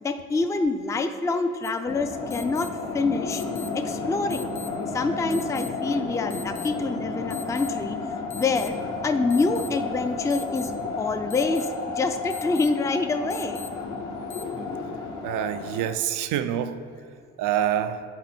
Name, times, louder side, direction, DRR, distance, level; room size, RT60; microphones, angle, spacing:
voice 1, 0.0-3.4 3.7-4.5 4.9-8.0 8.3-8.8 9.0-13.6, left 3 dB, 10° left, 8 dB, 0.4 m, -26 dB
sound 1, 1.6-1.7 2.3-2.7 3.3-3.7 4.3-4.7 5.3-5.7 6.3-6.7 7.3-7.7 8.3-8.7 9.3-9.7 10.3-10.7 11.3-11.7 12.3-12.7 13.3-13.7 14.3-14.4, left 5 dB, 45° left, 0.7 m, -41 dB
sound 2, 1.9-15.9, left 4 dB, 65° left, 1.0 m, -32 dB
voice 2, 15.2-16.9 17.4-18.0, right 10 dB, 85° right, 11 dB, 0.5 m, -26 dB
10.5 x 4.2 x 4.3 m, 2.5 s
cardioid pair, 90°, 30 cm